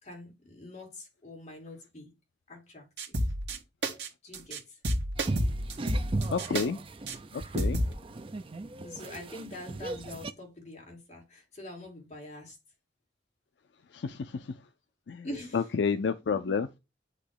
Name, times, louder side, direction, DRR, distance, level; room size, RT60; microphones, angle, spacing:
voice 1, 0.0-2.1 2.5-3.3 4.2-4.8 8.8-12.6 15.2-15.7, left 1 dB, 40° left, 2.7 m, -45 dB
sound 1, 3.0-3.6 3.8-4.1 4.3-4.6 4.8-6.6 7.1-7.2 7.6-7.9, equal, 70° right, 1.5 m, -29 dB
sound 2, 5.2-10.3, right 2 dB, 30° right, 0.4 m, -37 dB
voice 2, 6.3-6.8 7.5-7.8 14.0-14.2 15.1-15.2 15.5-16.8, left 5 dB, 70° left, 0.4 m, -29 dB
8.2 x 3.0 x 4.9 m
head